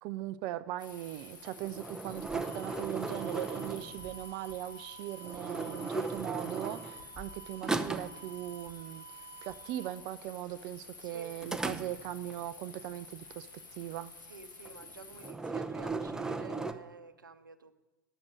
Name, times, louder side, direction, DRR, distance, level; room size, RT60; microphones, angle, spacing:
voice 1, 0.0-14.1, right 14 dB, 45° right, 11 dB, 0.3 m, -40 dB
sound 1, 0.8-15.3, left 4 dB, 75° left, 1.7 m, -51 dB
sound 2, 1.4-4.3 5.2-7.3 7.6-8.2 11.4-12.3 14.6-14.9 15.2-16.7, right 3 dB, 5° right, 0.7 m, -37 dB
sound 3, 2.4-9.9, right 7 dB, 55° left, 3.3 m, -52 dB
voice 2, 14.3-17.7, right 5 dB, 80° right, 9 dB, 0.7 m, -50 dB
11.0 x 7.2 x 6.3 m, 1.2 s
figure-of-eight pair, 80°, 11 cm